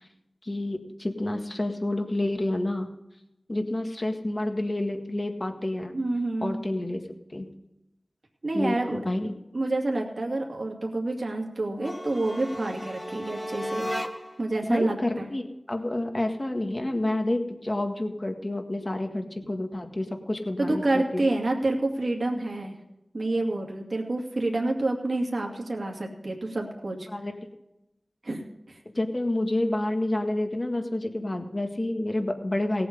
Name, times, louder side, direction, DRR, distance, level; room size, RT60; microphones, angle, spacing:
voice 1, 0.4-2.9 3.5-5.9 6.4-7.0 7.3-7.5 8.5-9.4 14.6-21.3 27.1-27.4 28.9-32.9, left 1 dB, 40° left, 5 dB, 1.8 m, -29 dB
voice 2, 5.9-6.6 8.4-9.0 9.5-13.9 14.4-15.2 20.6-22.8 23.1-27.1 28.2-28.8, right 2 dB, 65° right, 0 dB, 2.3 m, -28 dB
sound 1, 11.7-14.5, equal, 5° left, 1.5 m, -34 dB
18.0 x 7.8 x 5.4 m, 0.90 s
wide cardioid pair, 55°, 0 cm